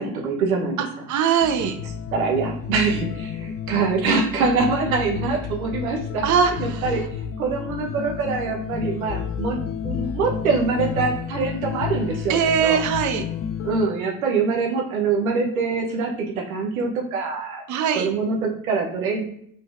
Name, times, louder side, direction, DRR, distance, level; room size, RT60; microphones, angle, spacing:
voice 1, 0.0-0.9 2.1-6.2 6.6-7.1 7.4-9.6 9.8-12.8 13.6-17.6 17.9-19.2, right 4 dB, 85° right, 1 dB, 1.0 m, -24 dB
voice 2, 0.8-1.8 6.2-6.8 12.3-13.2 17.7-18.1, right 7 dB, 45° right, 6 dB, 0.8 m, -21 dB
sound 1, 1.4-13.9, left 7 dB, 35° left, 0.5 m, -31 dB
5.4 x 3.8 x 2.6 m, 0.66 s
hypercardioid pair, 70°, 41 cm